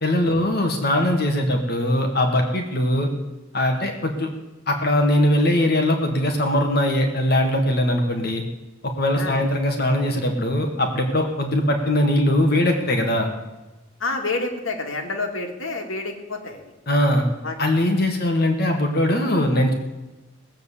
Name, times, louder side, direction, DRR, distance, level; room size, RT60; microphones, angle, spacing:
voice 1, 0.0-3.1 3.5-4.3 4.7-8.4 9.0-13.3 16.9-17.2 17.6-19.7, left 1 dB, 50° left, 3 dB, 1.9 m, -21 dB
voice 2, 14.0-16.7 17.4-17.7, left 3 dB, 80° left, 3 dB, 2.2 m, -28 dB
18.0 x 7.6 x 8.4 m, 1.1 s
head